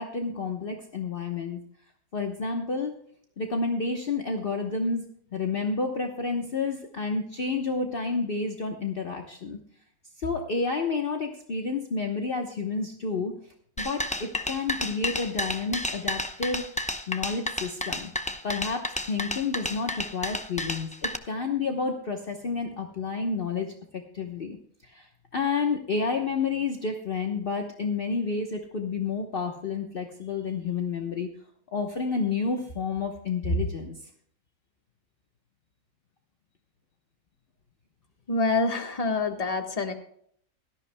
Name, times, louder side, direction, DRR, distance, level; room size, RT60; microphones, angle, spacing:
voice 1, 0.0-1.6 2.1-2.9 3.4-9.6 10.2-18.1 18.4-24.6 24.8-31.3 31.7-34.0, left 4 dB, 45° left, 3 dB, 1.2 m, -30 dB
sound 1, 13.8-21.2, left 1 dB, 10° left, 0.5 m, -31 dB
voice 2, 38.3-39.9, left 3 dB, 30° left, 5 dB, 1.4 m, -26 dB
17.5 x 13.5 x 2.2 m, 0.64 s
omnidirectional pair, 1.4 m